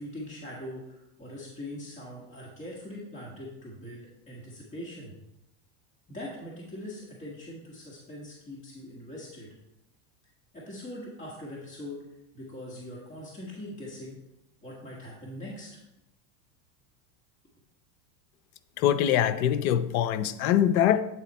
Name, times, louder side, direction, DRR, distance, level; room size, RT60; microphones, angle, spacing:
voice 1, 0.0-5.1 6.1-9.5 10.5-12.0 12.3-14.2 14.6-15.8, left 1 dB, 15° left, -5 dB, 1.4 m, -42 dB
voice 2, 18.8-21.0, left 10 dB, 75° left, 12 dB, 0.6 m, -23 dB
8.3 x 4.2 x 4.2 m, 0.89 s
supercardioid pair, 140°, 43 cm